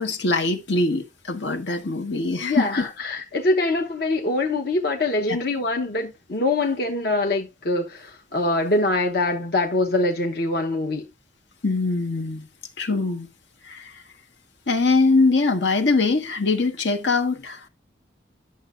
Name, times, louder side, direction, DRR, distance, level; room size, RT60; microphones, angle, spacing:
voice 1, 0.0-2.9 5.3-5.4 11.6-12.5 12.8-13.3 13.6-14.0 14.7-17.7, left 3 dB, 75° left, 1.4 m, -22 dB
voice 2, 2.4-11.1, left 2 dB, 55° left, 1.0 m, -24 dB
11.0 x 6.7 x 2.5 m
head